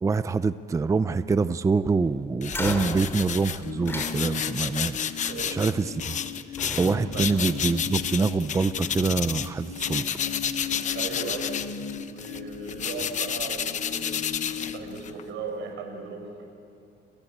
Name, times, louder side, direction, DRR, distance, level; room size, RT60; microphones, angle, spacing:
voice 1, 0.0-6.2 6.8-10.0, right 4 dB, 15° right, 13 dB, 0.6 m, -25 dB
sound 1, 2.4-9.5 9.7-15.2, left 8 dB, 40° left, 1.0 m, -31 dB
sound 2, 2.5-4.8 5.9-6.3 6.6-8.3, left 2 dB, 15° left, 3.4 m, -36 dB
sound 3, 3.6-15.0, left 6 dB, 70° left, 4.0 m, -38 dB
voice 2, 5.1-5.6 7.1-7.3 10.9-11.6 12.0-14.2 14.5-16.4, right 4 dB, 90° right, 4 dB, 6.4 m, -37 dB
29.5 x 22.5 x 8.6 m, 2.4 s
cardioid pair, 140°, 18 cm